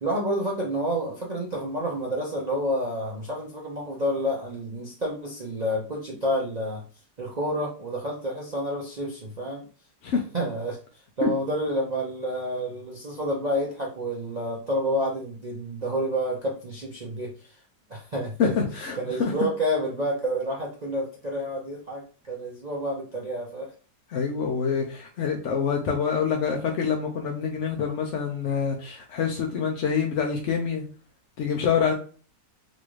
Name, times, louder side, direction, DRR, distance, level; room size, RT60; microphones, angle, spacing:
voice 1, 0.0-6.8 7.2-9.6 10.3-10.8 11.2-17.6 17.9-18.5 19.0-23.7, equal, 50° right, -4 dB, 0.5 m, -29 dB
voice 2, 18.4-19.3 24.1-30.8 31.4-31.9, left 6 dB, 65° left, 1 dB, 0.7 m, -26 dB
4.2 x 2.5 x 3.1 m, 0.38 s
omnidirectional pair, 1.8 m